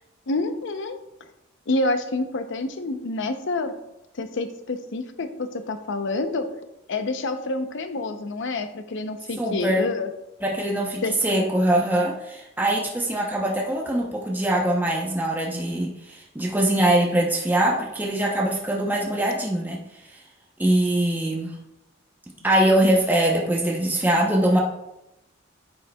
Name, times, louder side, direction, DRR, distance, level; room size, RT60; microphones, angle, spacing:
voice 1, 0.3-1.0 1.7-3.7 4.1-6.5 6.9-10.1 11.0-11.5, left 2 dB, 65° left, 9 dB, 0.7 m, -28 dB
voice 2, 9.4-9.9 10.4-19.8 20.6-21.6 22.4-24.6, right 1 dB, 10° right, -1 dB, 0.7 m, -22 dB
9.3 x 6.3 x 2.3 m, 0.89 s
head